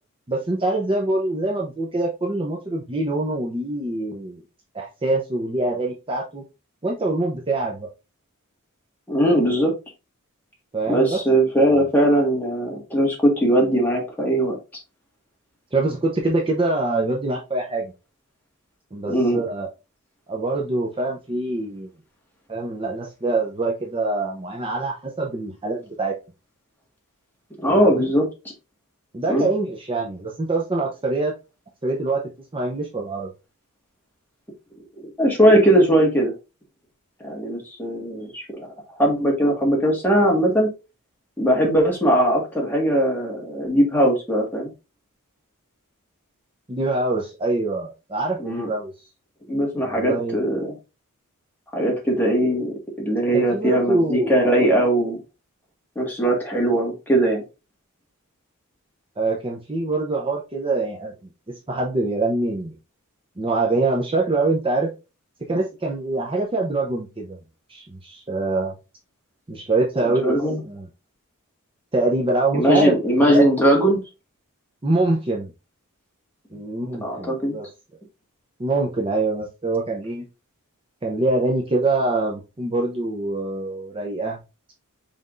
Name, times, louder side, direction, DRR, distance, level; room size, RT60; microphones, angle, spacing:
voice 1, 0.3-4.4 4.7-6.4 6.8-7.9 10.7-11.2 11.6-11.9 15.7-17.9 18.9-19.7 20.3-21.9 22.5-26.1 27.7-28.1 29.1-31.3 31.8-32.2 32.5-33.3 46.7-48.9 49.8-50.6 53.3-54.3 59.2-61.1 61.5-62.7 63.4-64.9 65.5-67.4 67.7-68.7 69.5-70.9 71.9-72.9 73.3-73.5 74.8-75.5 76.5-77.7 78.6-80.3 81.0-84.4, right 2 dB, 25° right, -1 dB, 0.7 m, -24 dB
voice 2, 9.1-9.7 10.9-14.6 19.1-19.4 27.6-28.3 29.3-29.5 35.0-36.3 37.2-38.7 39.0-40.7 41.4-44.7 48.4-48.7 49.5-50.7 51.7-55.2 55.9-57.4 70.0-70.6 72.5-74.0 77.0-77.6, right 1 dB, 10° left, -2 dB, 1.7 m, -20 dB
5.5 x 3.5 x 2.5 m, 0.28 s
head